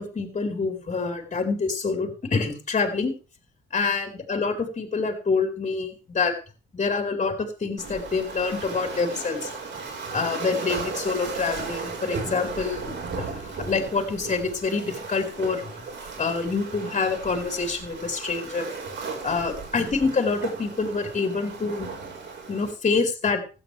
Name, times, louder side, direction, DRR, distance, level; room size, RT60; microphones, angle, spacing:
voice 1, 0.0-3.1 3.7-6.3 6.7-9.5 10.1-12.9 13.2-15.6 16.2-18.7 19.2-21.9 22.5-23.4, left 4 dB, 35° left, 3 dB, 4.4 m, -26 dB
Waves surf, 7.8-22.7, right 4 dB, 65° right, 5.1 m, -36 dB
16.5 x 12.5 x 3.5 m, 0.34 s
cardioid pair, 90°, 20 cm